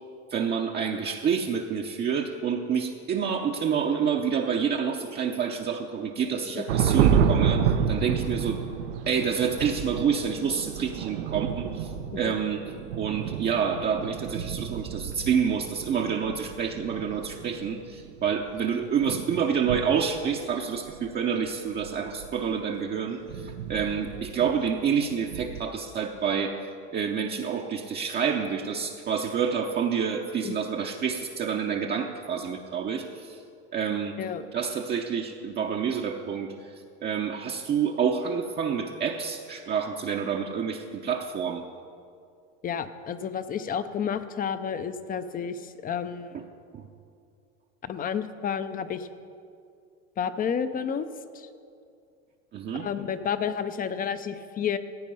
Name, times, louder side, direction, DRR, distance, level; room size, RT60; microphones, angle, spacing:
voice 1, 0.3-8.6 9.1-12.6 13.0-26.6 26.9-33.4 33.7-34.2 34.5-36.5 37.0-41.6 46.3-46.4 46.7-46.8 52.5-52.9, right 7 dB, 30° right, 1 dB, 0.7 m, -28 dB
sound 1, 6.7-20.4 20.8-21.2 21.7-22.5 23.1-25.6, right 7 dB, 90° right, 0.8 m, -30 dB
voice 2, 42.6-46.4 47.8-49.1 50.2-51.1 51.3-51.5 52.7-54.8, left 7 dB, 25° left, 12 dB, 0.6 m, -31 dB
15.5 x 9.0 x 5.5 m, 2.4 s
supercardioid pair, 120°, 35 cm